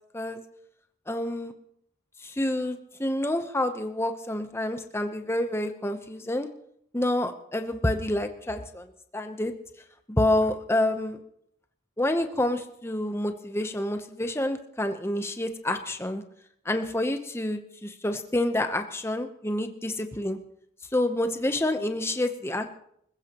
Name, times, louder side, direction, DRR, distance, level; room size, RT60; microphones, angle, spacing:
voice 1, 1.1-1.5 2.2-6.5 6.9-9.5 10.1-11.2 12.0-16.2 16.6-20.4 20.9-22.7, left 1 dB, 10° left, 7 dB, 0.8 m, -28 dB
25.0 x 15.0 x 3.0 m, 0.72 s
head